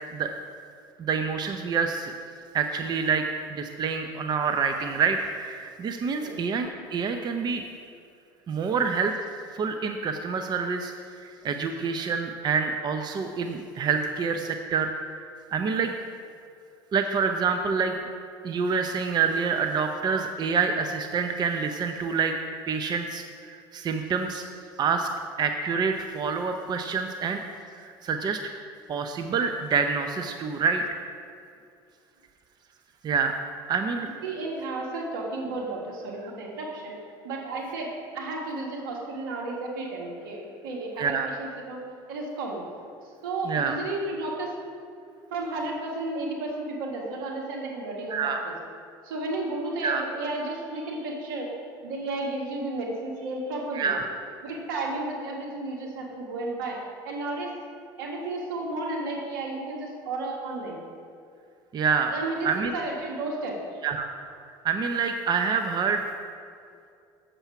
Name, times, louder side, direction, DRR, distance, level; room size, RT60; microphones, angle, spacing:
voice 1, 1.0-2.1 2.5-3.2 3.5-7.6 8.5-9.1 9.5-14.9 15.5-15.9 16.9-18.0 18.4-22.3 22.7-24.4 24.8-25.1 25.4-27.4 27.8-28.4 28.9-31.0 33.0-33.3 33.7-34.1 41.0-41.3 43.5-43.8 48.1-48.4 49.8-50.0 53.7-54.1 61.7-62.1 62.4-62.7 63.8-64.1 64.6-66.0, right 5 dB, 40° right, 6 dB, 0.6 m, -27 dB
voice 2, 34.2-36.9 37.2-41.8 42.1-42.6 43.2-44.5 45.3-48.5 49.0-51.5 51.8-53.9 54.4-56.8 57.0-57.5 58.0-60.8 62.1-63.6, right 2 dB, 80° right, -1 dB, 1.7 m, -33 dB
7.2 x 6.8 x 5.8 m, 2.4 s
hypercardioid pair, 80°, 11 cm